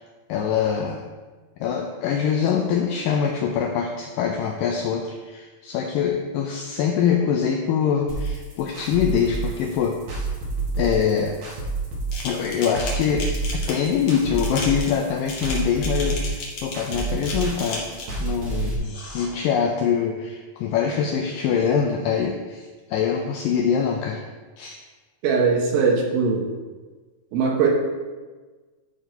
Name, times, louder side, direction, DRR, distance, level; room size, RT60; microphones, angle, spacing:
voice 1, 0.3-1.0 1.6-10.2 10.8-11.4 12.2-17.9 18.2-24.2 24.6-24.8, left 7 dB, 85° left, 2 dB, 1.9 m, -24 dB
sound 1, 8.1-18.8, right 3 dB, 55° right, 2.3 m, -29 dB
sound 2, 12.1-18.2 18.8-19.3, left 3 dB, 55° left, 2.2 m, -34 dB
voice 2, 25.2-26.5 27.3-27.7, right 5 dB, 70° right, 0 dB, 2.7 m, -20 dB
11.5 x 4.1 x 4.5 m, 1.3 s
omnidirectional pair, 4.5 m